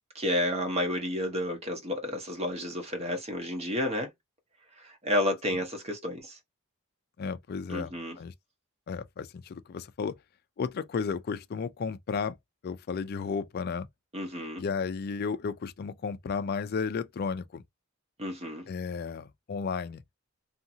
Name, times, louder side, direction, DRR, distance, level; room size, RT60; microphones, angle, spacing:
voice 1, 0.1-4.1 4.8-6.4 7.7-8.2 14.1-14.6 18.2-18.7, left 1 dB, 30° right, 0.9 m, -31 dB
voice 2, 7.2-8.3 8.9-10.2 10.6-12.4 12.6-13.9 14.6-17.6 18.7-20.0, left 5 dB, 45° left, 0.3 m, -33 dB
2.7 x 2.5 x 2.7 m
head